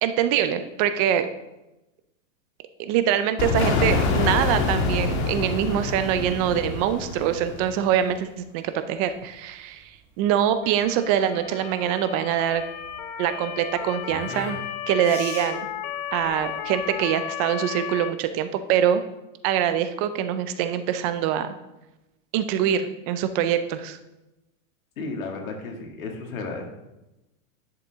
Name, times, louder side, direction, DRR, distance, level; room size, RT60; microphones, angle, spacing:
voice 1, 0.0-1.3 2.8-9.8 10.2-12.6 13.2-14.6 14.9-15.7 16.1-19.0 19.4-21.5 22.3-24.0, right 10 dB, 30° right, 10 dB, 0.4 m, -24 dB
sound 1, 3.4-8.0, left 4 dB, 55° left, 1.7 m, -26 dB
sound 2, 9.0-17.1, right 1 dB, 5° right, 1.8 m, -43 dB
Motor vehicle (road) / Siren, 10.6-18.1, left 10 dB, 35° left, 0.5 m, -34 dB
voice 2, 25.0-26.6, left 3 dB, 85° left, 2 dB, 2.2 m, -33 dB
10.5 x 6.7 x 3.5 m, 0.97 s
supercardioid pair, 150°, 40 cm